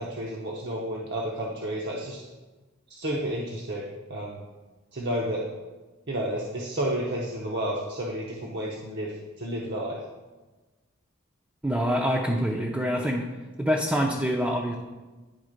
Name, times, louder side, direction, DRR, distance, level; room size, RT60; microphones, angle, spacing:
voice 1, 0.0-2.2 3.0-3.8 4.1-4.4 4.9-5.4 6.1-9.1 9.4-10.0, right 1 dB, 55° right, -3 dB, 0.8 m, -31 dB
voice 2, 11.6-13.2 13.6-14.8, equal, 5° right, -1 dB, 0.5 m, -25 dB
10.0 x 3.5 x 5.0 m, 1.2 s
head